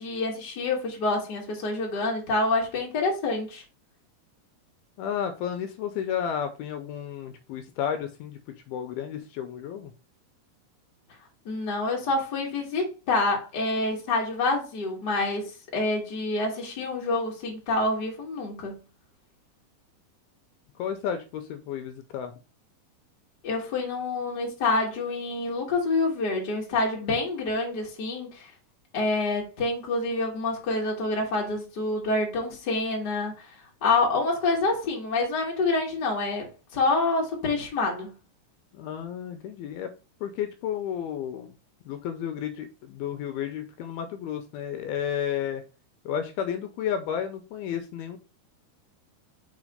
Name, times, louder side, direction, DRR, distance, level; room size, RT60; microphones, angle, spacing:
voice 1, 0.0-3.6 11.4-15.4 15.7-18.8 23.4-28.5 28.9-33.4 33.8-36.5 36.7-38.1, left 3 dB, 35° left, 1.8 m, -27 dB
voice 2, 5.0-8.4 8.7-9.9 20.8-22.3 38.7-39.9 40.2-41.5 41.9-45.6 46.1-48.2, left 9 dB, 80° left, 2.5 m, -32 dB
5.8 x 4.1 x 4.9 m
omnidirectional pair, 4.7 m